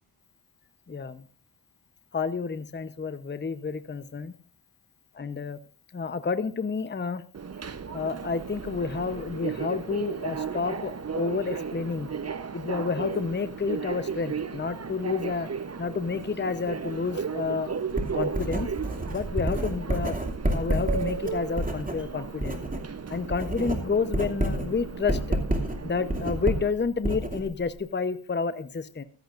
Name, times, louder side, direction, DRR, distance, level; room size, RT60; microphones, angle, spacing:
voice 1, 0.9-1.2 2.1-4.3 5.1-5.6 5.9-7.2 7.9-12.1 12.5-15.5 15.8-17.7 18.1-18.7 19.1-20.1 20.4-22.6 23.1-25.4 25.8-29.0, left 5 dB, 20° left, 12 dB, 0.8 m, -30 dB
Subway metro underground, 7.3-26.7, right 6 dB, 30° right, 0.8 m, -35 dB
Writing, 17.9-22.9 23.2-27.8, right 1 dB, 15° right, 2.6 m, -29 dB
14.5 x 14.0 x 2.5 m, 0.42 s
cardioid pair, 75°, 48 cm